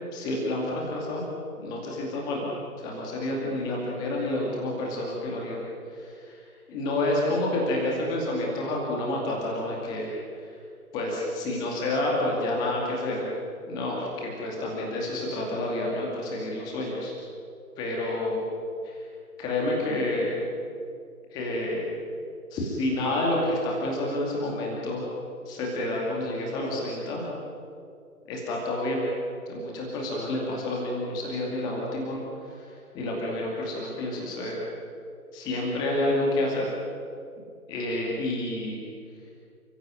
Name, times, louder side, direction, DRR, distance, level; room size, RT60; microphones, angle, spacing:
voice 1, 0.1-1.3 1.6-2.5 2.8-5.6 5.9-6.4 6.7-10.1 10.4-10.5 10.9-13.3 13.6-17.1 17.8-18.5 18.8-19.0 19.4-20.4 21.3-21.9 22.5-25.1 25.5-27.3 28.3-29.0 29.5-32.7 32.9-34.6 35.3-36.7 37.7-38.8, left 1 dB, 10° left, -2 dB, 2.4 m, -29 dB
28.5 x 16.5 x 9.3 m, 2.4 s
figure-of-eight pair, 150°, 46 cm